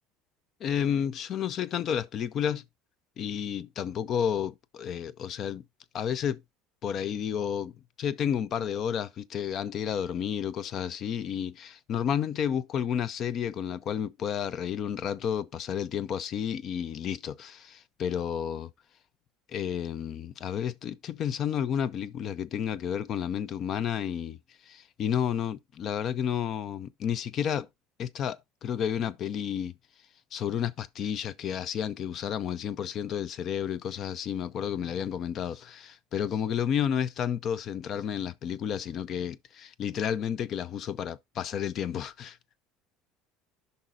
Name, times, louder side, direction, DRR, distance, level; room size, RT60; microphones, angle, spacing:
voice 1, 0.6-2.6 3.2-5.6 5.9-6.4 6.8-18.7 19.5-24.4 24.6-27.7 28.0-29.8 30.3-42.4, left 8 dB, 40° left, 0.4 m, -31 dB
13.0 x 5.3 x 2.4 m
cardioid pair, 135°, 0 cm